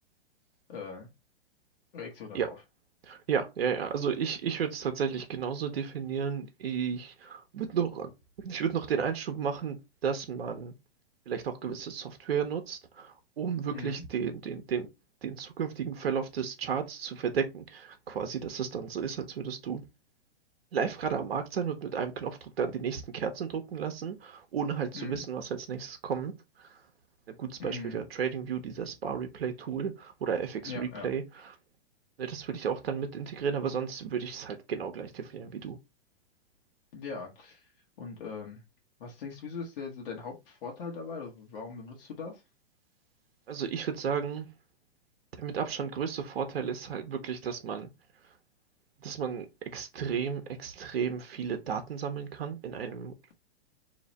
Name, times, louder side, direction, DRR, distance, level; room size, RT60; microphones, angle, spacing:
voice 1, 0.7-1.1 1.9-2.6 13.7-14.0 24.9-25.2 27.6-28.0 30.7-31.1 36.9-37.7 38.0-38.6 39.0-42.4, left 5 dB, 65° left, 1.4 m, -40 dB
voice 2, 3.1-8.1 8.4-9.8 10.0-10.7 11.3-14.9 15.2-19.8 20.7-26.3 26.6-26.7 27.4-31.5 32.2-35.8 43.5-44.5 45.4-47.9 49.0-49.5 49.7-53.1, right 7 dB, 85° right, 1.0 m, -33 dB
3.2 x 2.9 x 4.1 m
hypercardioid pair, 135°, 30 cm